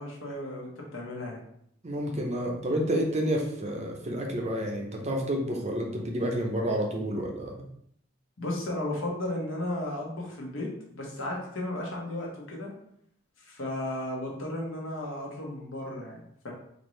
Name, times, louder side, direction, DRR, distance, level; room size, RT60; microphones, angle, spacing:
voice 1, 0.0-1.4 8.4-12.7 13.4-16.5, left 1 dB, 70° left, -2 dB, 1.1 m, -34 dB
voice 2, 1.8-7.7, equal, 35° right, 1 dB, 0.6 m, -29 dB
4.3 x 2.7 x 3.2 m, 0.69 s
head